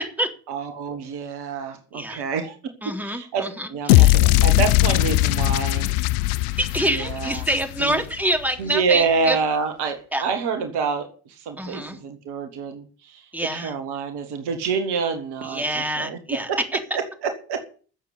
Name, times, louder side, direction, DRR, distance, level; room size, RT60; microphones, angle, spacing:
voice 1, 0.5-2.6 3.0-5.9 6.9-7.4 7.8-8.0 8.6-11.1 11.4-13.2 13.5-16.2 16.5-16.6 16.9-17.0 17.5-17.6, right 5 dB, 60° right, 7 dB, 2.0 m, -27 dB
voice 2, 2.8-4.2 6.6-9.4 10.1-10.2 11.6-12.0 13.3-13.7 15.4-16.5, right 1 dB, 5° right, 4 dB, 3.6 m, -26 dB
sound 1, 3.9-8.1, left 18 dB, 70° left, 0.6 m, -19 dB
13.5 x 7.4 x 8.4 m, 0.40 s
figure-of-eight pair, 45°, 45 cm